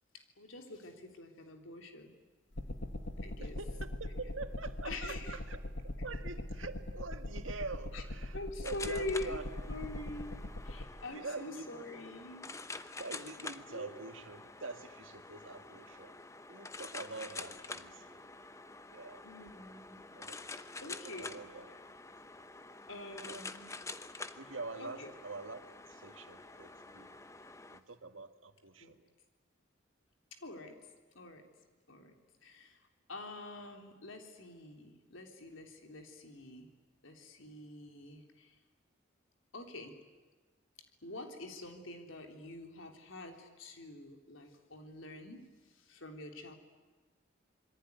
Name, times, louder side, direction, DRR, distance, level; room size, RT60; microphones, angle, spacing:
voice 1, 0.1-2.1 3.2-3.6 4.8-5.4 7.9-8.0 8.3-9.4 9.7-10.4 10.6-12.5 13.7-13.9 19.2-20.0 20.8-21.4 22.9-23.7 24.8-25.1 25.4-25.5 28.8-28.9 30.3-30.8 31.1-31.5 31.9-32.1 32.4-36.7 37.0-38.6 39.5-40.0 41.0-46.5, left 2 dB, 85° left, 4 dB, 3.5 m, -45 dB
sound 1, 2.6-10.9, left 1 dB, 65° left, 1.8 m, -41 dB
voice 2, 3.4-5.6 6.0-9.4 9.7-9.8 11.1-12.0 13.0-16.2 16.5-18.2 18.9-19.2 20.2-20.4 21.2-21.7 23.2-23.4 24.4-25.6 25.9-27.2 27.7-29.0, right 3 dB, 85° right, 8 dB, 1.8 m, -45 dB
sound 2, 8.6-27.8, left 3 dB, 15° left, 0.9 m, -48 dB
26.5 x 22.5 x 9.6 m, 1.3 s
head